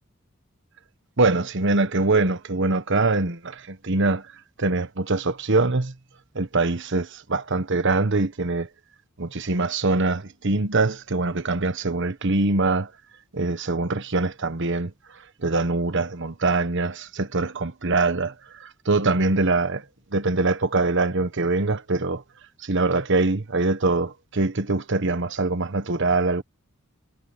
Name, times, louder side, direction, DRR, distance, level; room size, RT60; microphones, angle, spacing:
voice 1, 1.2-4.2 4.6-5.9 6.3-8.7 9.2-12.9 13.3-14.9 15.4-18.3 18.6-19.8 20.1-22.2 22.6-26.4, right 3 dB, 60° right, 1.3 m, -23 dB
head